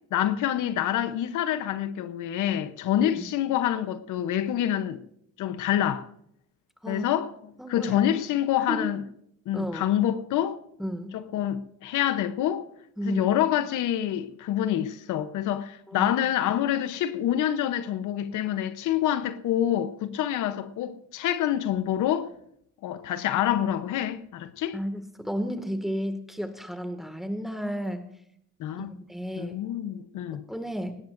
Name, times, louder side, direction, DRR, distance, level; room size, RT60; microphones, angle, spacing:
voice 1, 0.1-5.0 5.4-6.0 6.9-7.3 7.7-9.0 9.5-10.6 11.1-12.6 13.0-22.3 22.8-24.8 28.6-28.9 29.4-30.4, left 11 dB, 85° left, 0.9 m, -27 dB
voice 2, 7.6-8.0 8.7-8.9 9.5-9.9 10.8-11.1 13.0-13.3 15.9-16.1 24.7-28.1 28.8-29.6 30.5-30.9, equal, ahead, 2.0 m, -32 dB
18.0 x 17.0 x 2.6 m
cardioid pair, 90°, 30 cm